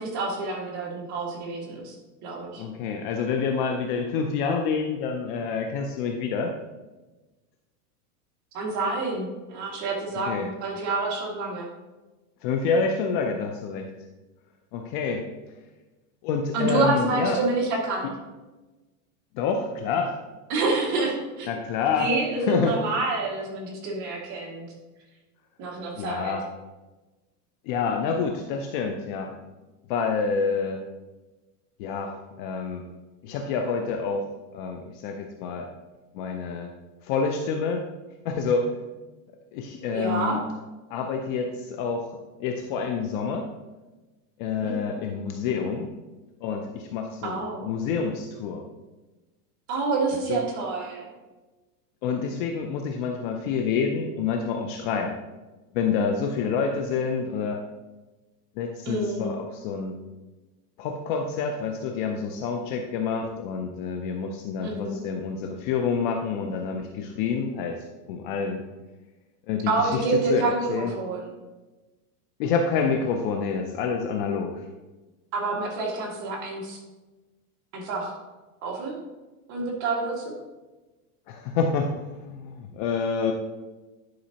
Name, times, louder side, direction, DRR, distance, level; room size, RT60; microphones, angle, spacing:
voice 1, 0.0-2.0 2.2-2.6 8.5-11.7 16.5-18.1 20.5-21.5 22.0-24.7 25.6-26.3 39.9-40.4 44.6-44.7 47.2-47.7 49.7-51.1 58.9-59.3 64.6-65.0 69.7-71.3 75.3-76.8 77.7-78.1 78.6-79.0 79.5-80.3, right 3 dB, 35° right, -1 dB, 2.0 m, -28 dB
voice 2, 2.6-6.5 10.2-10.5 12.4-13.9 14.7-15.2 16.2-17.4 18.0-18.1 19.3-20.2 21.5-22.1 22.5-22.8 26.0-26.4 27.7-29.3 29.9-30.8 31.8-32.8 33.2-34.2 34.5-35.7 36.1-36.7 37.0-37.8 38.2-38.7 39.5-40.4 40.9-43.5 44.4-45.9 46.4-48.6 50.3-50.4 52.0-55.1 55.7-57.6 58.6-60.0 60.8-68.6 69.5-70.9 72.4-74.6 81.3-83.3, left 5 dB, 35° left, 3 dB, 0.5 m, -28 dB
10.5 x 5.2 x 2.8 m, 1.1 s
supercardioid pair, 150°, 47 cm